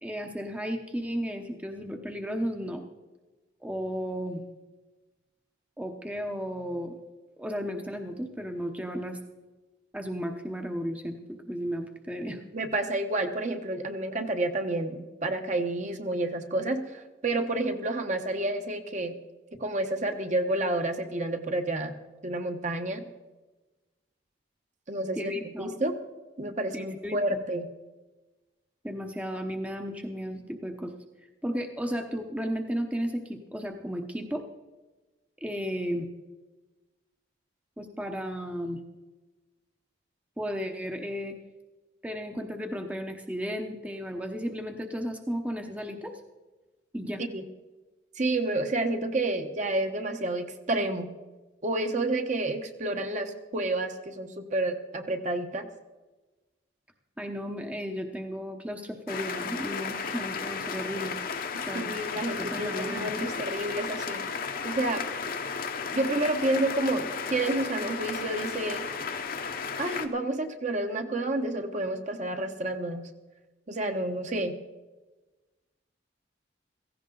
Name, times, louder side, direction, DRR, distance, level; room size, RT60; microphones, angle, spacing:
voice 1, 0.0-2.9 3.6-4.4 5.8-7.0 7.4-9.2 9.9-11.2 11.5-12.4 25.2-25.8 26.7-27.2 28.8-30.9 31.4-34.4 35.4-36.1 37.8-38.8 40.4-41.3 42.0-46.1 46.9-47.2 57.2-61.2 61.7-61.9 62.3-63.3, equal, 5° right, 4 dB, 0.8 m, -34 dB
voice 2, 12.5-19.2 19.6-21.9 22.2-23.1 24.9-25.3 25.6-26.0 26.4-27.7 47.2-47.4 48.2-51.1 51.6-55.7 61.7-64.2 64.6-65.0 65.9-68.9 69.8-73.0 73.7-74.5, right 2 dB, 40° right, 6 dB, 1.1 m, -29 dB
sound 1, 59.1-70.1, left 5 dB, 50° left, 0.9 m, -34 dB
16.0 x 15.5 x 3.9 m, 1.2 s
head